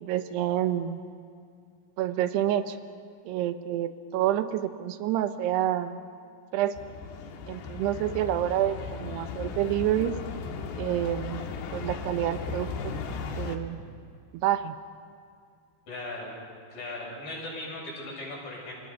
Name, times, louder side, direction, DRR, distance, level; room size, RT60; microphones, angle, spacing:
voice 1, 0.0-1.0 2.0-2.8 3.3-6.0 6.5-6.8 7.5-10.2 10.8-11.4 11.7-12.9 13.4-13.8 14.3-14.8, right 12 dB, 90° right, 10 dB, 3.1 m, -28 dB
sound 1, 6.8-13.6, left 5 dB, 85° left, 3.7 m, -36 dB
voice 2, 15.9-16.4 16.7-18.7, left 2 dB, 55° left, -3 dB, 8.8 m, -38 dB
30.0 x 26.5 x 5.7 m, 2.4 s
omnidirectional pair, 4.6 m